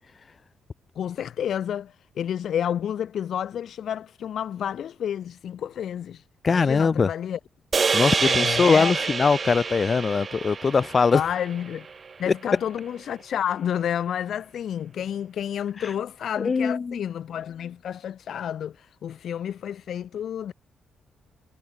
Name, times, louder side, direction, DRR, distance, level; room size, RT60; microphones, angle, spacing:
voice 1, 1.0-6.2 6.5-7.4 8.2-8.9 11.1-11.9 12.2-20.5, left 9 dB, 70° left, 0.5 m, -30 dB
voice 2, 6.4-7.1 7.9-11.2 12.3-12.4 16.4-17.0, left 5 dB, 40° left, 1.0 m, -21 dB
sound 1, 7.7-12.1, right 5 dB, 40° right, 0.5 m, -27 dB
cardioid pair, 75°, 0 cm